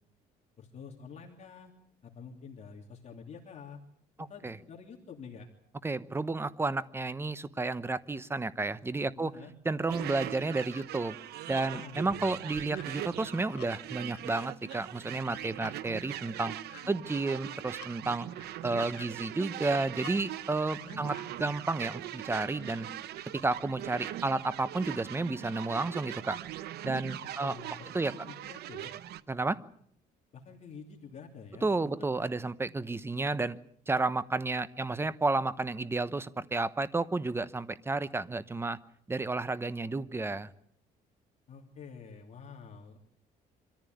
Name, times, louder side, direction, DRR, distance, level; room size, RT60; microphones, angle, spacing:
voice 1, 0.6-1.7 2.0-3.8 4.2-5.5 9.2-9.5 11.6-12.3 16.8-17.1 20.8-21.2 27.2-28.9 30.3-32.1 41.5-43.0, left 5 dB, 40° left, 0 dB, 3.0 m, -48 dB
voice 2, 5.8-9.3 9.6-11.2 11.5-16.6 16.9-18.3 18.6-21.1 21.4-22.9 23.3-26.4 26.8-27.6 27.9-28.1 29.3-29.6 31.6-33.6 33.9-38.8 39.1-40.5, right 3 dB, 15° right, 16 dB, 1.0 m, -31 dB
sound 1, 9.9-29.2, right 13 dB, 75° right, 0.9 m, -41 dB
sound 2, 10.7-10.8 11.2-11.7 12.1-12.9 13.2-13.7 14.1-14.8 15.2-15.8 16.1-16.8 17.3-17.9 18.3-19.1 19.6-20.2 20.6-21.2, left 16 dB, 80° left, 1.3 m, -52 dB
25.5 x 14.5 x 9.4 m, 0.67 s
cardioid pair, 110°, 17 cm